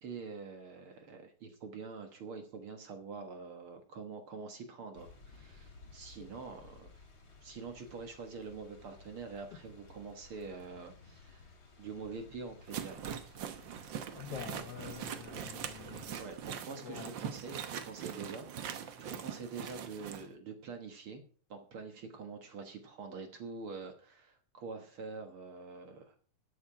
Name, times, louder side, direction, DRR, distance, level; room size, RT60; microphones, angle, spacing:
voice 1, 0.0-7.0 7.4-11.4 11.8-13.1 16.2-21.2 21.5-26.2, right 4 dB, 55° right, 1.8 m, -45 dB
sound 1, 4.9-16.4, left 4 dB, 40° left, 3.7 m, -57 dB
sound 2, 12.7-20.2, right 8 dB, 80° right, 1.0 m, -42 dB
voice 2, 14.1-16.2 16.7-17.1, left 9 dB, 80° left, 1.3 m, -46 dB
13.5 x 8.6 x 4.9 m
omnidirectional pair, 3.6 m